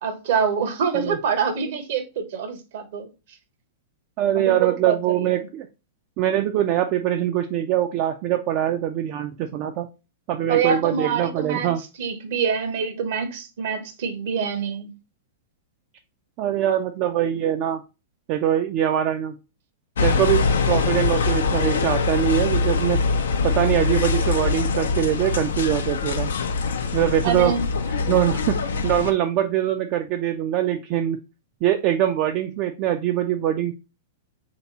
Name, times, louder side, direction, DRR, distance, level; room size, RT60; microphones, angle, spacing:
voice 1, 0.0-3.1 4.4-5.3 10.5-11.7 12.0-14.9 27.2-27.6, right 6 dB, 60° right, 0.9 m, -25 dB
voice 2, 4.2-5.7 6.2-9.9 10.3-11.8 16.4-17.8 18.3-19.3 20.0-23.0 23.4-26.3 26.9-27.5 28.1-28.5 28.8-31.2 31.6-33.7, right 11 dB, 45° right, 0.4 m, -23 dB
sound 1, 20.0-29.1, left 4 dB, 75° left, 0.5 m, -23 dB
3.5 x 2.9 x 4.0 m
hypercardioid pair, 105°, 0 cm